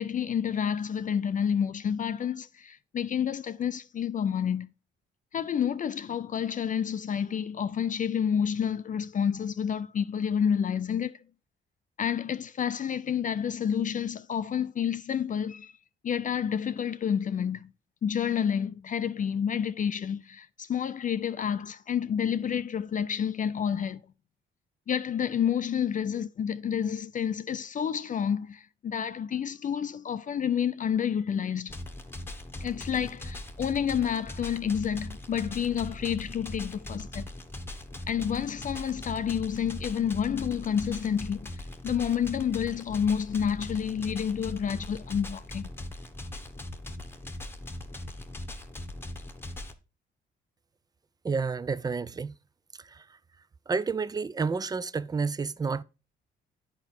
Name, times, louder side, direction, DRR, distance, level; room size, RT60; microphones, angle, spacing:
voice 1, 0.0-4.7 5.3-11.2 12.0-15.7 16.0-17.7 18.0-24.0 24.9-31.8 32.6-37.3 38.1-45.7, left 8 dB, 40° left, 0.4 m, -29 dB
sound 1, 31.7-49.7, left 1 dB, 10° left, 1.0 m, -40 dB
voice 2, 51.2-52.4 52.7-53.2 53.7-55.8, right 4 dB, 20° right, 0.4 m, -30 dB
8.8 x 4.8 x 4.6 m
cardioid pair, 90°, 20 cm